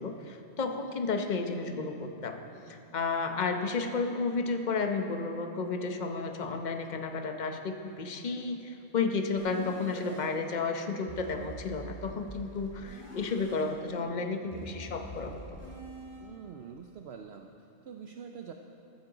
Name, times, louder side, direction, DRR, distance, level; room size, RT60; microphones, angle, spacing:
voice 1, 0.0-15.6, left 4 dB, 40° left, 5 dB, 0.9 m, -32 dB
sound 1, 9.4-10.2 11.1-13.6 14.5-16.2, equal, 10° left, 2.4 m, -45 dB
voice 2, 16.2-18.5, right 7 dB, 60° right, 4 dB, 0.8 m, -45 dB
15.0 x 13.5 x 3.9 m, 2.7 s
omnidirectional pair, 1.3 m